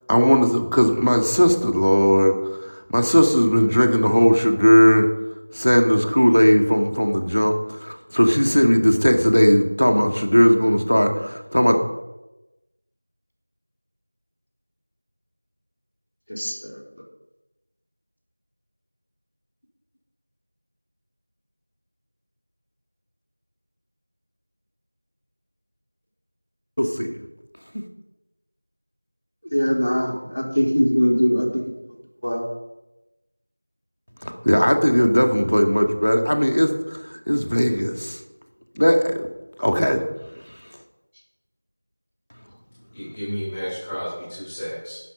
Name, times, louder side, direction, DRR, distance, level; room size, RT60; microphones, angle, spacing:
voice 1, 0.1-5.1 5.5-11.8 26.8-27.2 34.2-38.2 38.8-39.3 39.6-40.0, equal, 80° left, 4 dB, 2.2 m, -18 dB
voice 2, 29.5-31.6 32.2-32.4, equal, 65° left, -1 dB, 3.8 m, -21 dB
voice 3, 42.9-45.0, equal, 10° left, -10 dB, 3.7 m, -31 dB
11.5 x 10.0 x 5.3 m, 0.99 s
figure-of-eight pair, 180°, 0 cm